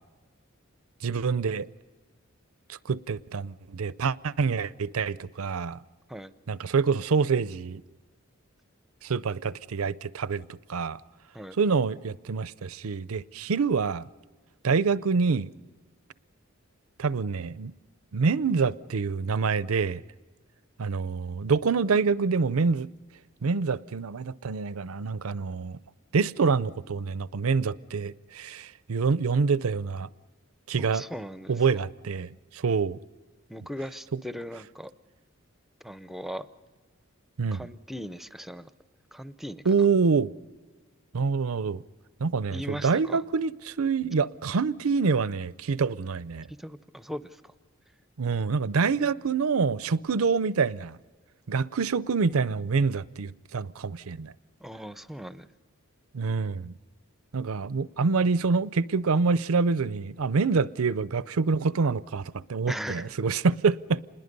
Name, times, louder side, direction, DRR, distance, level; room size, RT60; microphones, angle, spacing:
voice 1, 1.0-1.7 2.7-5.8 6.5-7.8 9.0-11.0 11.6-14.1 14.6-15.5 17.0-17.7 18.1-20.0 20.8-22.9 23.4-25.8 26.1-30.1 30.7-31.0 31.5-33.0 37.4-37.7 39.6-40.3 41.1-41.8 42.2-46.5 48.2-51.0 51.5-54.3 56.1-56.7 57.3-64.0, right 5 dB, 80° right, 0.6 m, -26 dB
voice 2, 30.8-31.5 33.5-34.9 35.8-36.5 37.5-38.7 39.1-39.6 42.5-43.2 46.6-47.2 54.6-55.5 62.7-63.1, equal, ahead, 0.5 m, -38 dB
27.5 x 21.0 x 5.3 m
head